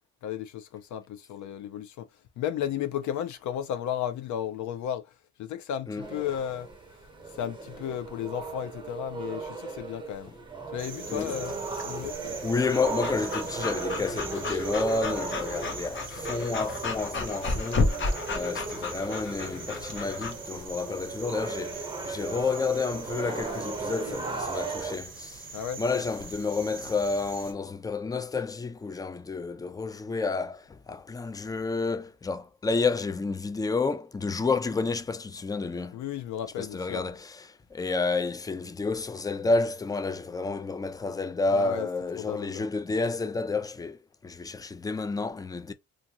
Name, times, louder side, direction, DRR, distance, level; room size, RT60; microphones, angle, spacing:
voice 1, 0.2-6.7 7.3-10.3 10.7-11.6 11.8-12.2 25.5-25.8 35.9-37.0 41.5-41.9 42.2-42.7, left 10 dB, 75° left, 0.5 m, -34 dB
sound 1, 6.0-25.0, right 3 dB, 15° right, 0.9 m, -37 dB
sound 2, 10.8-27.5, right 5 dB, 40° right, 1.0 m, -43 dB
Breathing / Dog, 11.2-20.3, left 3 dB, 40° left, 0.8 m, -33 dB
voice 2, 12.4-17.9 18.3-25.5 25.8-36.0 36.6-37.4 37.7-45.7, left 4 dB, 15° left, 0.3 m, -30 dB
2.6 x 2.4 x 2.8 m
cardioid pair, 90°, 30 cm